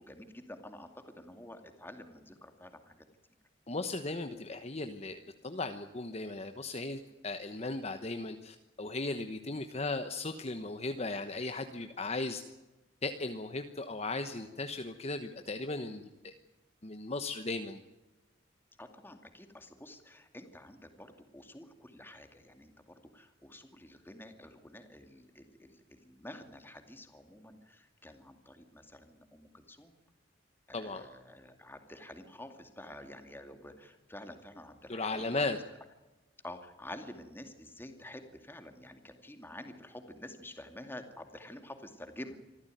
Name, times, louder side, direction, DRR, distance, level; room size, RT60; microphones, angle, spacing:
voice 1, 0.0-3.0 18.8-29.9 30.7-35.6 36.4-42.4, left 1 dB, 10° left, 7 dB, 2.4 m, -49 dB
voice 2, 3.7-12.4 13.0-16.3 16.8-17.8 30.7-31.1 34.9-35.6, left 2 dB, 35° left, 7 dB, 1.1 m, -37 dB
25.5 x 14.5 x 9.3 m, 1.1 s
head